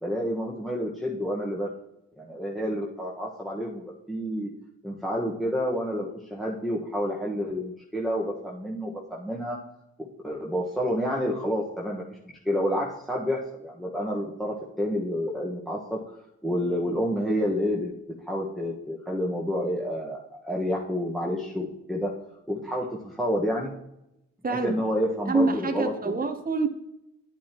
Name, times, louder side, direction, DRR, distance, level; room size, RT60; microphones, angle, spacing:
voice 1, 0.0-1.7 2.2-4.5 4.8-9.6 10.2-12.0 12.4-16.0 16.4-17.9 18.2-22.1 22.5-23.7 24.5-26.1, equal, ahead, -4 dB, 1.5 m, -29 dB
voice 2, 25.2-26.7, right 3 dB, 30° right, 6 dB, 1.0 m, -26 dB
9.1 x 8.5 x 3.0 m, 0.84 s
cardioid pair, 50°, 31 cm